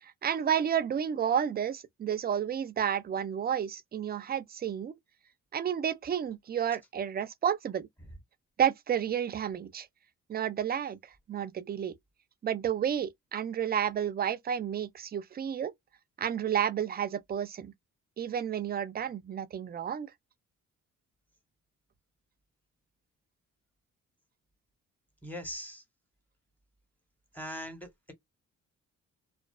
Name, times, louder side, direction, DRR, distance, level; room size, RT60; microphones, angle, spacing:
voice 1, 0.0-4.9 5.5-7.9 8.6-9.9 10.3-12.0 12.4-15.7 16.2-17.7 18.2-20.1, right 9 dB, 30° right, 0.4 m, -31 dB
voice 2, 25.2-25.8 27.3-28.1, equal, 5° left, 1.0 m, -40 dB
2.4 x 2.3 x 2.3 m
cardioid pair, 90°, 30 cm